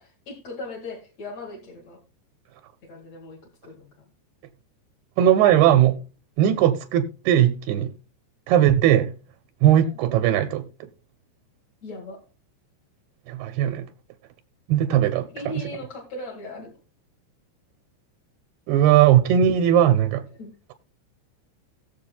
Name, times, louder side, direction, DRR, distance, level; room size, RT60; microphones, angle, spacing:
voice 1, 0.0-2.0 2.8-3.4 3.6-4.1 10.0-10.1 11.8-12.2 15.3-16.7 20.4-20.5, left 2 dB, 45° left, 2.5 m, -38 dB
voice 2, 5.2-6.0 6.4-7.9 8.5-9.1 9.6-10.7 13.3-13.9 14.7-15.3 15.5-15.6 18.7-20.2, right 11 dB, 80° right, 2.3 m, -18 dB
19.0 x 7.4 x 2.3 m
omnidirectional pair, 5.4 m